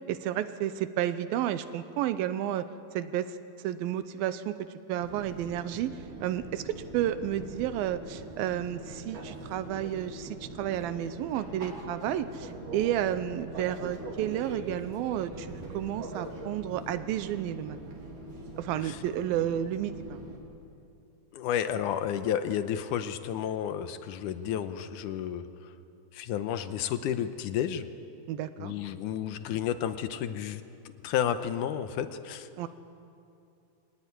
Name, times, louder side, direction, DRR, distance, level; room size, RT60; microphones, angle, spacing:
voice 1, 0.1-2.7 2.9-3.4 3.6-4.6 4.9-5.9 6.2-17.8 18.6-20.2 28.3-28.7 32.6-32.7, right 11 dB, 80° right, 12 dB, 2.6 m, -31 dB
Fixed-wing aircraft airplane, 5.0-20.4, right 1 dB, 60° right, 4.7 m, -42 dB
voice 2, 21.3-25.7 26.1-27.9 28.6-30.6 31.0-32.7, left 9 dB, 75° left, 10 dB, 2.0 m, -31 dB
24.5 x 17.5 x 9.8 m, 2.6 s
omnidirectional pair, 4.3 m